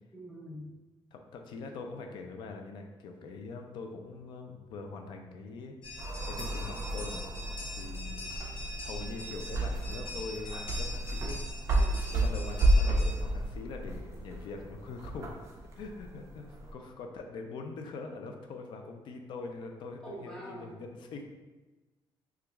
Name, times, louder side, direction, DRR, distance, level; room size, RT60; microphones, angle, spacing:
voice 1, 0.1-0.6 11.7-12.0 20.0-20.7, right 1 dB, 10° left, -5 dB, 0.7 m, -44 dB
voice 2, 1.1-7.2 7.7-8.2 8.8-11.4 12.1-15.4 15.7-16.4 16.7-21.2, left 4 dB, 65° left, 4 dB, 0.4 m, -43 dB
sound 1, 5.8-13.1, left 1 dB, 90° left, 0.8 m, -42 dB
sound 2, 6.0-16.7, right 1 dB, 35° right, 0.4 m, -32 dB
2.9 x 2.3 x 3.4 m, 1.2 s
cardioid pair, 180°, 9 cm